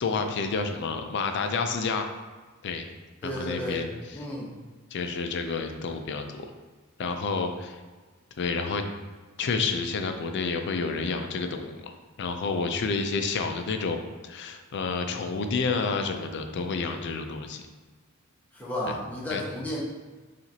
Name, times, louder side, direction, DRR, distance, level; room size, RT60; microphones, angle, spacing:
voice 1, 0.0-2.1 2.6-2.9 3.2-3.9 4.9-6.5 7.0-7.8 8.4-8.8 9.4-11.9 12.2-14.0 14.2-17.6 19.3-19.4, left 4 dB, 55° left, 6 dB, 0.4 m, -29 dB
voice 2, 3.2-3.8 4.1-4.5 18.5-19.8, left 1 dB, 10° left, -6 dB, 0.9 m, -33 dB
5.7 x 2.5 x 2.7 m, 1.3 s
head